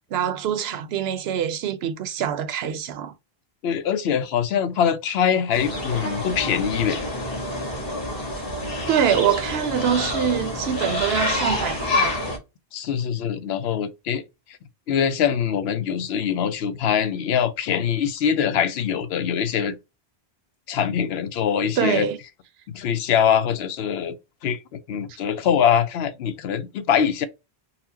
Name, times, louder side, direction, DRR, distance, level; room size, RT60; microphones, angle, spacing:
voice 1, 0.1-3.1 8.9-12.1 21.8-22.2, right 8 dB, 80° right, 0.8 m, -24 dB
voice 2, 3.6-7.1 12.7-14.2 14.9-19.8 20.7-22.1 22.7-24.1 24.4-27.3, left 8 dB, 80° left, 0.8 m, -23 dB
sound 1, 5.5-12.4, left 1 dB, 65° left, 1.6 m, -27 dB
4.1 x 2.1 x 2.7 m
omnidirectional pair, 1.0 m